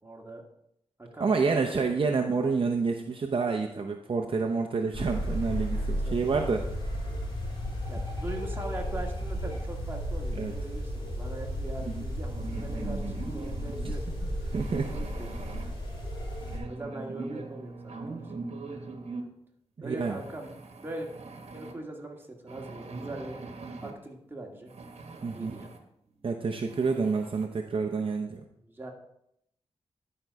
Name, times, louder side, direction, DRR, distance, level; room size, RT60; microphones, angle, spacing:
voice 1, 0.0-0.4 1.0-2.0 5.7-6.4 7.9-15.7 16.3-16.4 16.7-18.3 19.8-20.5 20.8-21.1 21.5-23.4 23.8-24.7 25.3-25.8 28.6-28.9, right 2 dB, 20° right, 0 dB, 2.1 m, -41 dB
voice 2, 1.2-6.6 10.3-10.5 11.9-12.0 14.5-14.9 19.8-20.2 25.2-25.6 26.2-28.4, right 4 dB, 50° right, 2 dB, 0.8 m, -28 dB
sound 1, 4.9-16.6, equal, 45° left, 4.5 m, -34 dB
sound 2, 12.2-13.8 14.5-15.7 16.4-19.2 20.0-21.7 22.5-24.0 24.7-25.8 26.2-26.3 26.7-27.5, right 3 dB, 70° right, 1.3 m, -41 dB
11.5 x 5.5 x 4.8 m, 0.77 s
cardioid pair, 70°, 11 cm